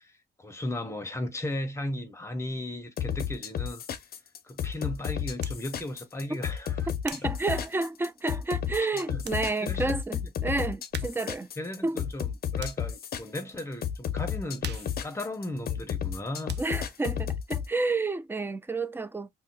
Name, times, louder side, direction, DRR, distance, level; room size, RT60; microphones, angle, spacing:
voice 1, 0.0-3.8 4.4-6.9 7.2-7.3 8.8-9.2 9.6-10.0 10.2-10.3 11.6-16.6, left 1 dB, 15° left, 0.8 m, -36 dB
sound 1, 3.0-17.7, left 9 dB, 60° left, 0.5 m, -32 dB
sound 2, 5.4-5.7 6.3-8.3 8.8-8.9 9.2-9.5 9.8-9.9 10.9-11.4 11.7-13.0 13.5-13.7 14.0-16.2 16.5-16.9, right 8 dB, 75° right, 0.5 m, -45 dB
voice 2, 7.0-11.5 11.8-12.0 16.6-19.3, right 3 dB, 10° right, 0.4 m, -30 dB
2.7 x 2.1 x 3.7 m
cardioid pair, 105°, 18 cm